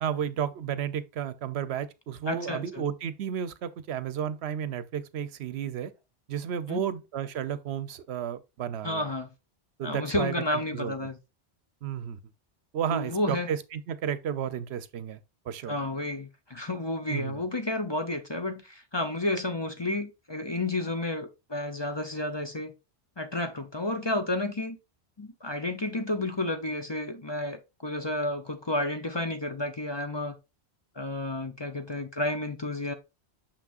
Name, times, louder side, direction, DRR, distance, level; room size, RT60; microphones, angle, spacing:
voice 1, 0.0-5.9 6.3-9.1 9.8-10.9 11.8-12.2 12.7-15.2 15.5-15.8 17.1-17.4, right 9 dB, 75° right, 0.9 m, -32 dB
voice 2, 2.3-2.6 6.7-6.8 8.8-9.3 9.8-11.2 12.9-13.5 15.7-22.7 23.2-24.8 25.2-30.4 31.0-32.9, left 2 dB, 30° left, 0.7 m, -31 dB
6.6 x 5.9 x 2.5 m
omnidirectional pair, 1.1 m